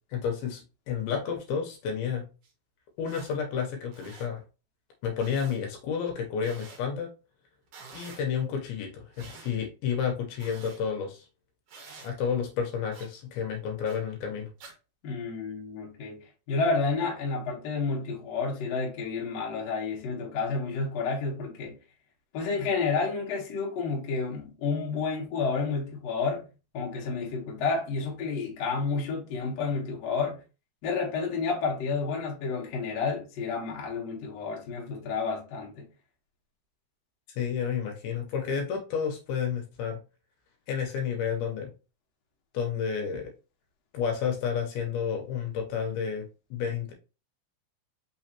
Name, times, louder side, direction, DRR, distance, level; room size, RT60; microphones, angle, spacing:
voice 1, 0.1-2.3 3.0-4.4 5.0-7.1 7.9-11.3 12.0-14.5 37.4-40.0 40.7-41.7 42.5-43.3 43.9-46.9, left 7 dB, 75° left, 2.6 m, -31 dB
sound 1, 2.4-2.5 3.0-3.3 3.8-4.3 5.2-5.6 6.4-6.8 7.7-8.2 9.1-9.5 10.4-10.8 11.7-12.1 12.9-13.1 13.9-14.0 14.6-14.7, right 4 dB, 60° right, 1.9 m, -48 dB
voice 2, 15.0-21.7 22.3-26.5 26.7-30.4 30.8-35.9, left 4 dB, 60° left, 1.8 m, -30 dB
5.7 x 3.1 x 2.9 m
omnidirectional pair, 4.6 m